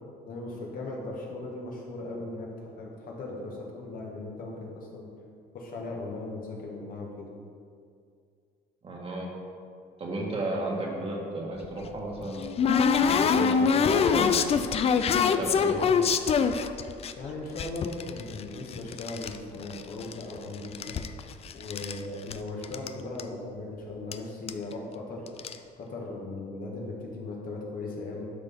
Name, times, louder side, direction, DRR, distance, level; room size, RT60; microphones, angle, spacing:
voice 1, 0.2-5.1 5.5-7.3 17.2-21.0 21.5-25.2 25.8-28.3, left 2 dB, 55° left, -2 dB, 1.5 m, -38 dB
voice 2, 8.8-9.3 10.0-12.4 13.0-14.5 15.2-15.9, right 2 dB, 35° right, -2 dB, 1.5 m, -34 dB
sound 1, 11.6-17.1 17.6-19.4 19.6-20.4 20.6-22.0 22.3-22.4 22.6-22.9 23.2-23.3 24.1-24.2 24.5-24.7 25.3-25.6, left 6 dB, 35° left, 0.4 m, -25 dB
11.5 x 4.2 x 3.6 m, 2.3 s
cardioid pair, 110°, 17 cm